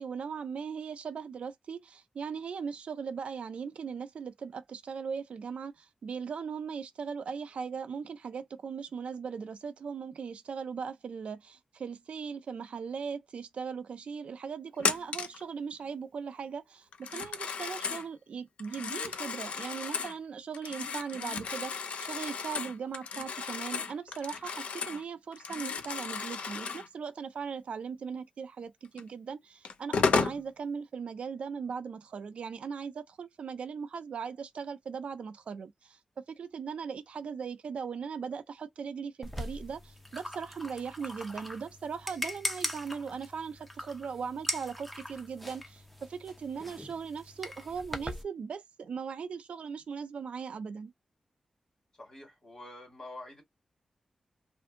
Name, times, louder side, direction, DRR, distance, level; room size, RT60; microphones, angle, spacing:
voice 1, 0.0-50.9, right 6 dB, 75° right, 0.4 m, -39 dB
Telephone, 14.8-15.4 16.9-18.1 18.6-20.2 20.5-25.0 25.3-26.9 29.0-29.1 29.6-30.4, left 5 dB, 90° left, 0.4 m, -33 dB
sound 1, 39.2-48.2, left 1 dB, 5° left, 0.5 m, -40 dB
voice 2, 52.0-53.4, left 2 dB, 35° left, 1.4 m, -47 dB
2.6 x 2.5 x 2.5 m
wide cardioid pair, 120°, 2 cm